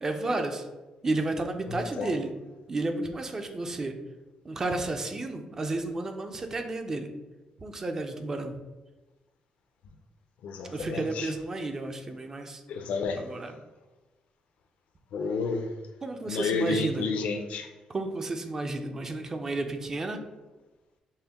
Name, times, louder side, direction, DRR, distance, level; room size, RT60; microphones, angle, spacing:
voice 1, 0.0-0.6 1.0-2.3 2.7-3.9 4.5-7.1 7.6-8.5 10.7-12.6 13.2-13.6 16.0-17.1 17.9-20.2, right 2 dB, 25° right, 6 dB, 0.3 m, -32 dB
voice 2, 1.7-2.1 10.4-11.3 12.7-13.2 15.1-15.7 16.3-17.7, left 4 dB, 75° left, 5 dB, 0.4 m, -30 dB
5.4 x 2.1 x 2.9 m, 1.1 s
cardioid pair, 160°, 2 cm